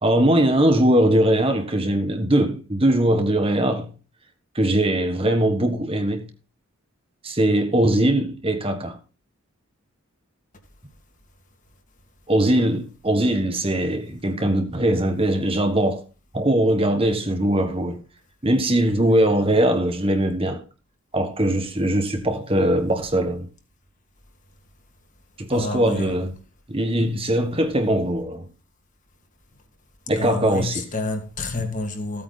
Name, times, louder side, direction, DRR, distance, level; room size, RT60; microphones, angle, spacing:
voice 1, 0.0-3.9 4.5-6.3 7.2-9.0 12.3-16.0 16.3-18.0 18.4-20.6 21.1-23.5 25.4-26.3 26.7-28.5 30.1-30.8, right 1 dB, 25° right, 1.4 m, -21 dB
voice 2, 25.5-26.1 30.2-32.2, left 2 dB, 35° left, 2.4 m, -29 dB
15.5 x 8.8 x 4.1 m
head